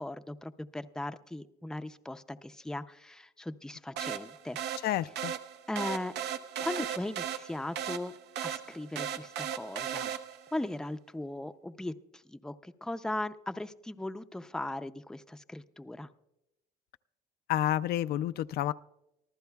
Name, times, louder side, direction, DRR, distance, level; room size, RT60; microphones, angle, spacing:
voice 1, 0.0-4.8 5.7-6.1 6.6-8.1 8.4-10.1 10.5-16.1, left 1 dB, 5° left, 10 dB, 0.5 m, -38 dB
sound 1, 4.0-10.6, right 9 dB, 85° right, 0.8 m, -37 dB
voice 2, 4.8-5.3 17.5-18.7, left 12 dB, 70° left, 13 dB, 0.4 m, -29 dB
24.5 x 14.5 x 2.3 m, 0.89 s
cardioid pair, 110°, 17 cm